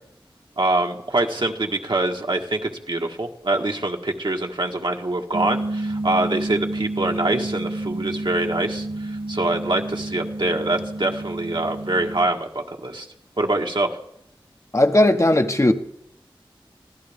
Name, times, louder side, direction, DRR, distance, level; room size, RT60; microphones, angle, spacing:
voice 1, 0.6-13.1 13.4-14.0, right 2 dB, 60° right, 1.6 m, -24 dB
sound 1, 5.3-12.3, right 2 dB, 85° right, 1.1 m, -30 dB
voice 2, 14.7-15.7, left 1 dB, 30° left, 1.0 m, -17 dB
24.0 x 15.5 x 3.6 m
wide cardioid pair, 40°, 9 cm